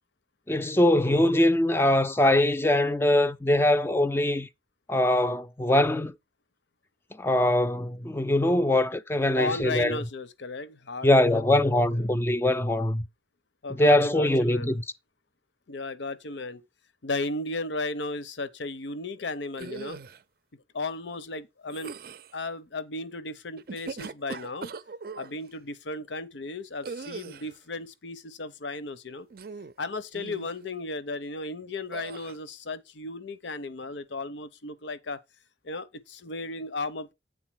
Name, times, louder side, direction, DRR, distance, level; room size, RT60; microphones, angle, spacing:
voice 1, 0.5-4.5 4.9-6.1 7.2-10.0 11.0-13.0 13.7-14.8, left 1 dB, 15° left, 0.4 m, -22 dB
voice 2, 9.4-11.7 13.6-14.8 15.7-16.6 17.0-20.0 20.7-22.0 22.3-24.7 25.2-29.3 29.8-35.2 35.6-37.1, left 2 dB, 90° left, 0.8 m, -35 dB
sound 1, 19.5-20.2 21.7-22.3 23.6-25.3 26.8-27.6 29.3-29.8 30.1-30.5 31.9-32.4, right 4 dB, 55° right, 0.5 m, -40 dB
8.8 x 4.0 x 6.0 m
head